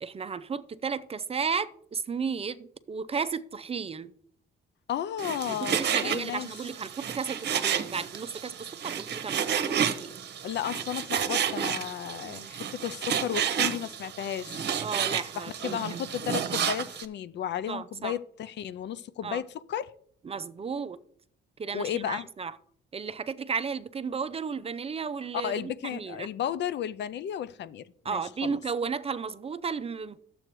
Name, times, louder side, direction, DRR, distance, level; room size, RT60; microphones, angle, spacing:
voice 1, 0.0-4.1 5.5-9.6 9.9-10.1 12.2-12.5 14.8-16.0 17.7-18.1 19.2-19.4 20.2-21.0 21.6-22.5 22.9-26.3 28.0-30.2, right 5 dB, 30° right, 0.5 m, -34 dB
voice 2, 4.9-6.7 10.4-14.7 15.4-19.9 21.7-22.3 25.3-28.6, left 10 dB, 60° left, 0.5 m, -34 dB
Frying (food), 5.2-17.0, right 8 dB, 60° right, 0.9 m, -31 dB
12.0 x 7.7 x 3.0 m
cardioid pair, 90°, 20 cm